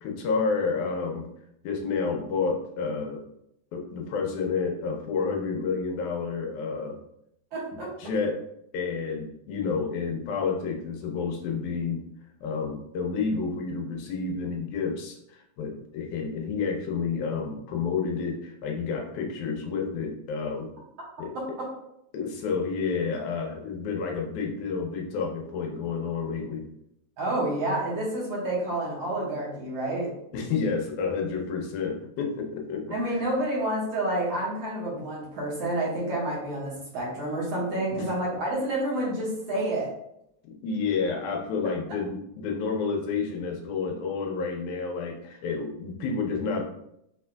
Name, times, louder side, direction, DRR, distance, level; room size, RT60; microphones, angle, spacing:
voice 1, 0.0-1.3 1.6-3.2 3.7-7.0 8.0-8.4 8.7-12.0 12.4-20.7 21.2-21.3 22.1-26.6 30.3-33.3 37.9-38.1 40.4-46.6, left 5 dB, 80° left, 1 dB, 2.0 m, -30 dB
voice 2, 7.5-7.9 21.3-21.7 27.2-30.1 32.9-39.9, right 1 dB, 60° right, -6 dB, 2.0 m, -29 dB
5.6 x 3.5 x 2.2 m, 0.78 s
omnidirectional pair, 3.6 m